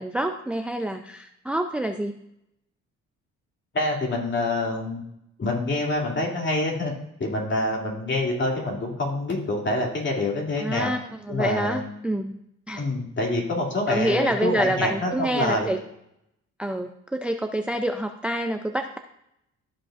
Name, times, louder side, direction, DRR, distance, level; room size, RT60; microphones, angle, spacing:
voice 1, 0.0-2.2 10.6-11.0 11.2-12.4 12.7-12.8 13.9-15.8 16.6-19.0, right 1 dB, 5° right, 6 dB, 0.4 m, -27 dB
voice 2, 3.7-5.0 5.4-6.9 7.2-10.9 11.3-11.8 12.8-15.7, left 2 dB, 40° left, -1 dB, 2.6 m, -26 dB
13.5 x 5.2 x 2.5 m, 0.79 s
cardioid pair, 90°, 30 cm